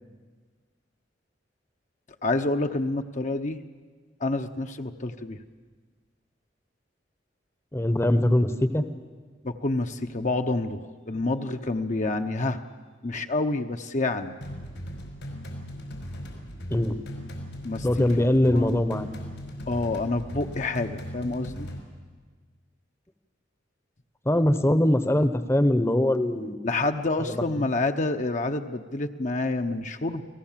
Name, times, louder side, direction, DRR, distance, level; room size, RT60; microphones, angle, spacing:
voice 1, 2.2-3.6 4.2-5.4 9.4-12.6 13.0-14.4 17.6-18.7 19.7-21.7 26.6-30.2, left 2 dB, 40° left, 6 dB, 0.9 m, -28 dB
voice 2, 7.7-8.8 16.7-17.0 17.8-19.1 24.3-26.6 27.3-27.4, left 1 dB, 15° left, 10 dB, 0.9 m, -22 dB
sound 1, 14.4-21.8, equal, 85° left, 4.9 m, -38 dB
29.0 x 18.5 x 7.5 m, 1.5 s
head